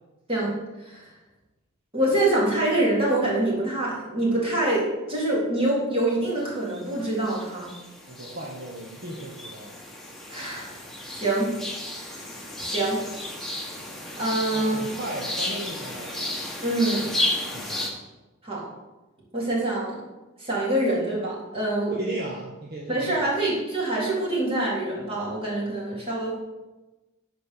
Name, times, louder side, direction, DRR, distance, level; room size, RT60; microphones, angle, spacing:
voice 1, 1.9-7.8 10.3-10.8 11.1-11.5 12.0-12.1 12.6-13.1 14.2-14.8 16.6-17.1 18.4-18.7 19.3-20.0 20.4-21.9 22.9-26.4, right 1 dB, 30° right, -6 dB, 3.5 m, -25 dB
sound 1, 6.4-6.9 7.2-17.9, left 1 dB, ahead, 1.6 m, -33 dB
voice 2, 8.1-9.8 14.5-16.2 17.5-17.9 21.9-23.3, right 1 dB, 50° right, -2 dB, 1.2 m, -36 dB
10.0 x 4.5 x 6.7 m, 1.1 s
head